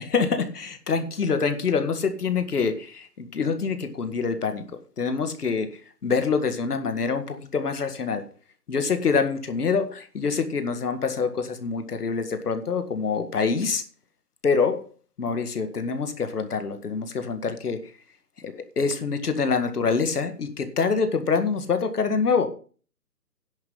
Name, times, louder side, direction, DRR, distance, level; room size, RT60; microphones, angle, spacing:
voice 1, 0.0-4.6 5.0-5.7 6.0-8.2 8.7-13.8 14.4-14.8 15.2-17.8 18.4-22.5, left 5 dB, 65° left, 8 dB, 2.0 m, -25 dB
10.5 x 5.7 x 7.9 m, 0.40 s
hypercardioid pair, 175°, 49 cm